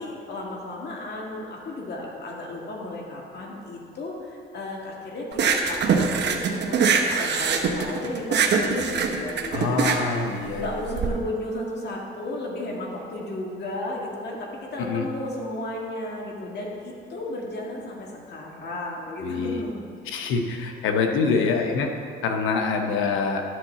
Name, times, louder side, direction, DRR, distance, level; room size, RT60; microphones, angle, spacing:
voice 1, 0.0-10.3 10.5-19.8 21.3-21.6, left 1 dB, 55° left, -2 dB, 2.0 m, -34 dB
sound 1, 5.3-11.1, right 5 dB, 60° right, 0.9 m, -23 dB
voice 2, 9.5-10.7 14.8-15.1 19.2-19.6 20.1-21.9 22.2-23.4, left 4 dB, 90° left, 4 dB, 0.9 m, -25 dB
11.0 x 3.9 x 6.9 m, 2.3 s
cardioid pair, 90°, 20 cm